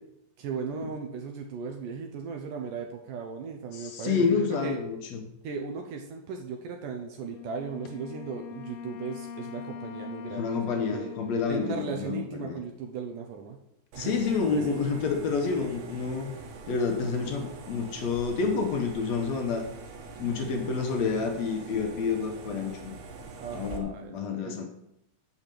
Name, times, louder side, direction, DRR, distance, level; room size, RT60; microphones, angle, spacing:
voice 1, 0.4-4.8 5.4-11.1 11.5-13.6 14.0-14.2 14.5-14.8 23.4-24.7, right 5 dB, 75° right, 3 dB, 2.1 m, -37 dB
voice 2, 3.7-5.2 10.4-12.6 14.0-16.3 16.7-19.7 20.2-22.9 23.5-24.7, left 5 dB, 65° left, 3 dB, 1.8 m, -29 dB
Wind instrument woodwind instrument, 7.3-12.8, left 7 dB, 85° left, 2.6 m, -43 dB
sound 1, 13.9-23.8, right 4 dB, 90° right, 3.3 m, -44 dB
7.0 x 6.5 x 7.6 m, 0.83 s
omnidirectional pair, 4.4 m